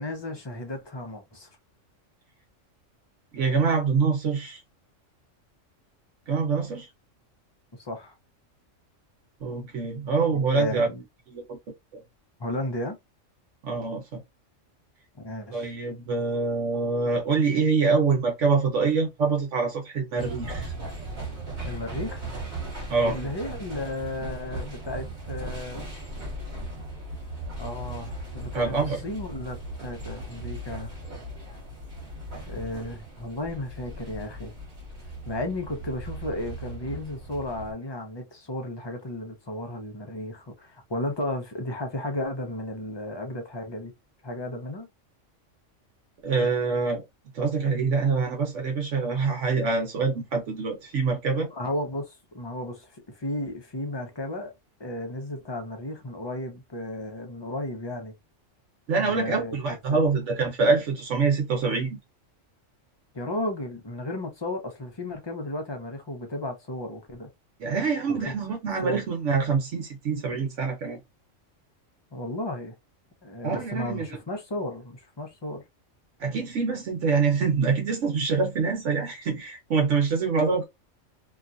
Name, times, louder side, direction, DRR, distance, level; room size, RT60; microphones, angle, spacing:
voice 1, 0.0-1.5 7.8-8.1 10.3-11.0 12.4-13.0 15.2-15.7 21.6-22.3 23.0-25.9 27.6-30.9 32.5-34.5 35.3-43.9 44.2-44.9 51.5-54.5 54.8-58.1 59.0-60.0 63.1-67.3 68.1-68.3 68.8-69.0 72.1-72.7 73.2-75.6, left 1 dB, 25° left, 0.6 m, -34 dB
voice 2, 3.3-4.6 6.3-6.9 9.4-10.9 11.3-11.6 13.6-14.2 15.5-20.7 22.9-23.2 28.5-29.0 46.2-47.0 47.3-51.5 58.9-62.0 67.6-71.0 73.4-74.1 76.2-80.7, right 4 dB, 75° right, 1.2 m, -25 dB
sound 1, 20.2-37.7, right 1 dB, 40° right, 1.3 m, -37 dB
2.9 x 2.3 x 2.5 m
omnidirectional pair, 1.3 m